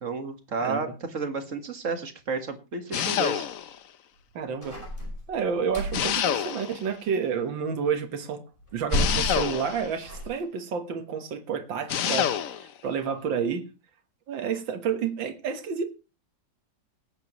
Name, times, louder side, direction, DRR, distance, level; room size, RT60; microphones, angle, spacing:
voice 1, 0.0-3.5, right 4 dB, 45° right, 1.9 m, -32 dB
voice 2, 0.6-0.9 4.4-4.8 5.3-8.4 8.7-12.3 12.6-13.7 14.3-15.8, right 6 dB, 85° right, 2.1 m, -30 dB
sound 1, 2.9-3.8 5.9-6.9 8.9-9.9 11.9-12.7, left 9 dB, 60° left, 1.0 m, -27 dB
sound 2, 4.6-6.1 8.6-10.2, left 1 dB, 25° left, 5.6 m, -31 dB
19.5 x 9.5 x 3.1 m
omnidirectional pair, 2.0 m